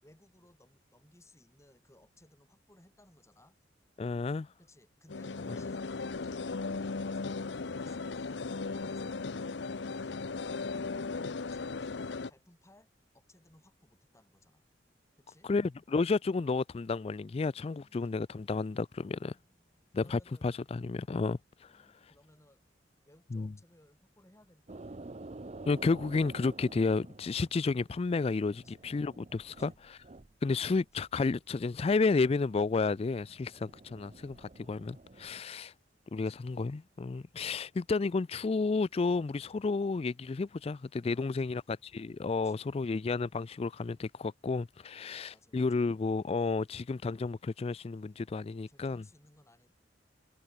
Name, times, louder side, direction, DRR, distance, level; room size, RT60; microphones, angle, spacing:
voice 1, 0.0-3.6 4.6-6.4 6.8-9.4 9.9-10.3 11.5-12.9 13.1-14.6 15.2-15.5 17.4-18.1 19.2-20.5 21.7-22.6 23.0-25.1 28.2-28.9 29.5-29.8 36.1-36.5 41.1-41.6 42.3-42.7 44.8-45.8 48.7-49.7, left 1 dB, 15° left, 5.2 m, -63 dB
voice 2, 4.0-4.5 5.5-5.6 15.4-19.3 19.9-21.7 23.3-23.5 25.6-29.7 30.4-35.7 36.1-41.6 41.9-49.0, left 4 dB, 35° left, 0.4 m, -31 dB
sound 1, 5.1-12.3, left 4 dB, 70° left, 0.7 m, -37 dB
sound 2, 24.7-30.3 30.6-31.2 31.6-35.4, right 2 dB, 35° right, 0.8 m, -50 dB
head